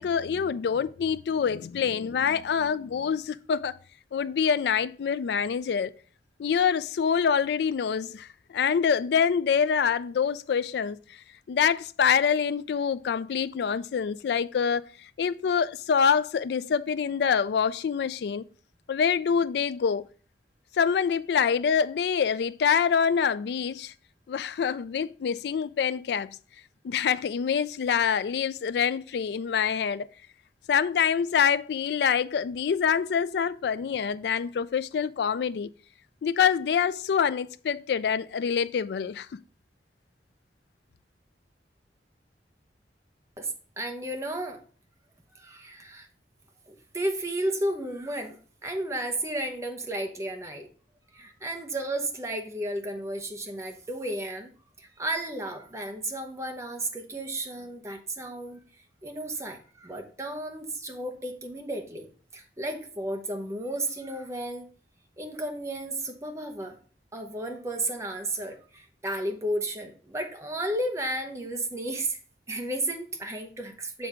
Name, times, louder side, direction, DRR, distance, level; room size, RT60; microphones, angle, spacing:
voice 1, 0.0-3.7 4.1-5.9 6.4-11.0 11.5-18.4 18.9-20.1 20.8-23.9 24.3-26.4 26.8-30.1 30.7-35.7 36.2-39.4, left 7 dB, 65° left, 0.3 m, -26 dB
voice 2, 43.4-44.6 45.4-46.1 46.9-48.4 48.6-50.7 51.1-54.5 54.8-58.6 59.0-62.1 62.3-64.7 65.2-66.8 67.1-72.2 72.5-74.1, right 1 dB, 15° right, 0.8 m, -33 dB
7.1 x 3.5 x 4.9 m
head